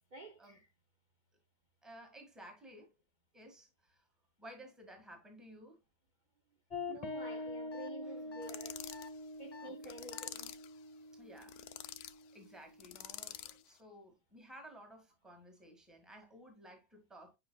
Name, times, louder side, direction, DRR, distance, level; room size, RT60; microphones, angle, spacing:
voice 1, 0.1-0.7 6.9-8.9 9.4-10.6, right 2 dB, 85° right, 0.4 m, -50 dB
voice 2, 1.8-2.9 3.3-4.1 4.4-5.8 8.0-8.4 9.6-10.0 11.1-11.6 12.3-17.4, right 1 dB, ahead, 1.7 m, -55 dB
sound 1, 6.7-13.6, left 2 dB, 25° left, 1.1 m, -46 dB
sound 2, 7.7-7.9 8.3-8.5 8.9-9.1 9.5-9.7 10.1-10.3, left 10 dB, 40° left, 0.5 m, -51 dB
sound 3, 8.4-9.1 9.8-10.7 11.4-12.1 12.8-13.6, left 12 dB, 70° left, 1.0 m, -47 dB
9.7 x 5.6 x 2.3 m
omnidirectional pair, 1.9 m